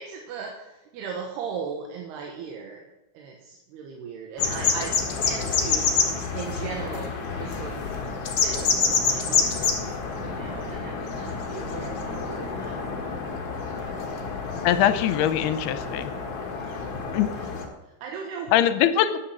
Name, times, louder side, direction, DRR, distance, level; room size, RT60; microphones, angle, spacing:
voice 1, 0.0-2.9 3.1-5.9 6.3-7.8 8.4-9.8 10.2-12.8 16.9-17.5 17.8-18.6, right 6 dB, 85° right, 1 dB, 3.3 m, -38 dB
sound 1, 4.4-17.6, left 5 dB, 50° left, 2.1 m, -28 dB
voice 2, 14.6-16.1 17.1-17.3 18.5-19.2, left 11 dB, 80° left, 11 dB, 2.7 m, -22 dB
10.5 x 9.4 x 7.3 m, 0.99 s
omnidirectional pair, 4.6 m